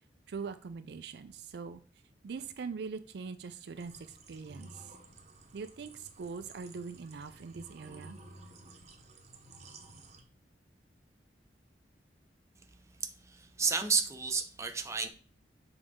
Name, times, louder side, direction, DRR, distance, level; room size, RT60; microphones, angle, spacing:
voice 1, 0.3-1.8 2.2-4.9 5.5-8.2, right 5 dB, 65° right, 0.4 m, -42 dB
sound 1, 3.7-10.2, right 2 dB, 40° right, 0.9 m, -54 dB
voice 2, 13.0-15.1, right 5 dB, 15° right, 0.6 m, -32 dB
6.9 x 3.9 x 3.6 m
head